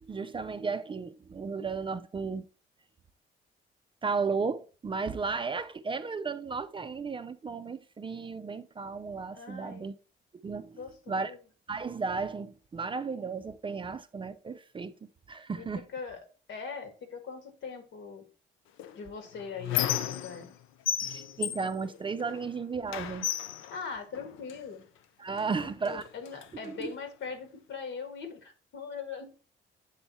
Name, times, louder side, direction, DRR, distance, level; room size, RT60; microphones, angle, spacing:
voice 1, 0.0-2.5 4.0-9.9 10.4-10.8 11.1-11.3 11.7-15.9 21.0-23.3 25.2-26.0 26.8-26.9, right 4 dB, 25° right, 0.4 m, -34 dB
voice 2, 9.3-9.9 10.7-11.4 15.6-16.2 16.5-18.2 18.9-20.5 23.7-24.8 25.6-29.3, left 5 dB, 70° left, 1.7 m, -41 dB
Squeak, 18.8-20.6 20.9-22.5 22.9-24.6 25.4-25.5 25.8-26.9, left 10 dB, 90° left, 0.6 m, -34 dB
7.9 x 3.5 x 4.1 m
cardioid pair, 90°, 20 cm